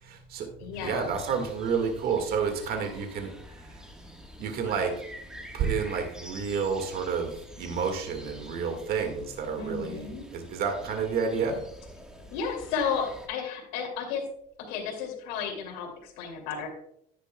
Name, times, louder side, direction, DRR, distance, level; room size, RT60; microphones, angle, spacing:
voice 1, 0.0-0.5 0.8-3.3 4.4-4.9 5.5-11.6, right 6 dB, 50° right, 5 dB, 1.8 m, -30 dB
voice 2, 0.6-1.1 9.6-10.3 12.3-14.2 14.7-16.7, left 6 dB, 80° left, 2 dB, 2.7 m, -33 dB
sound 1, 0.7-13.3, equal, 5° right, 1.4 m, -47 dB
10.5 x 9.8 x 2.3 m, 0.70 s
supercardioid pair, 105°, 20 cm